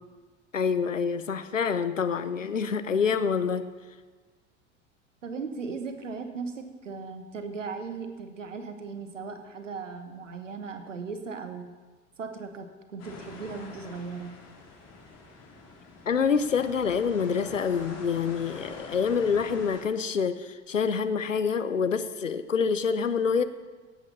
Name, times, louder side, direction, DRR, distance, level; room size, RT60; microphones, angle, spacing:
voice 1, 0.5-3.7 16.1-23.4, left 6 dB, 90° left, 11 dB, 0.7 m, -26 dB
voice 2, 5.2-11.7 12.2-14.4, right 4 dB, 85° right, 7 dB, 1.3 m, -37 dB
sound 1, 13.0-19.8, left 3 dB, 45° left, 3.7 m, -45 dB
17.5 x 8.0 x 5.5 m, 1.4 s
figure-of-eight pair, 75°, 37 cm